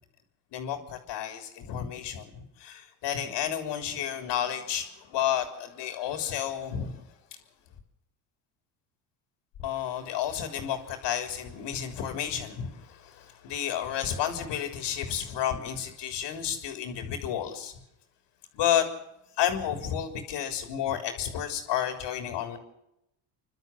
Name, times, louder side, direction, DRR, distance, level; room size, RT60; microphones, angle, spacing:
voice 1, 0.5-7.0 9.6-17.7 18.5-18.9 19.4-22.6, left 10 dB, 65° left, 6 dB, 3.5 m, -31 dB
29.5 x 12.0 x 7.6 m, 0.85 s
supercardioid pair, 85°, 46 cm